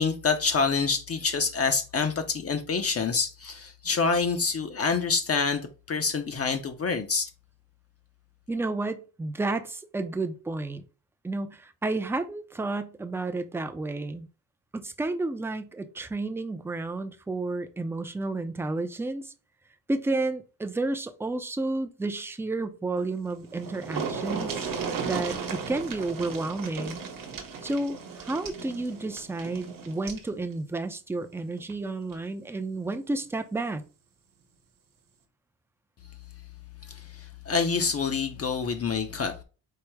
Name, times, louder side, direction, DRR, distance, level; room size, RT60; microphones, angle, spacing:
voice 1, 0.0-5.6 5.9-7.3 36.9-39.4, left 5 dB, 40° left, 0.6 m, -27 dB
voice 2, 8.5-10.8 11.2-14.3 14.7-19.3 19.9-24.7 25.1-27.0 27.6-33.8, right 2 dB, 5° right, 0.4 m, -31 dB
sound 1, 23.2-23.3 23.5-30.3 31.6-31.7 32.1-32.2, right 5 dB, 60° right, 1.0 m, -35 dB
4.7 x 2.0 x 4.5 m
cardioid pair, 120°, 37 cm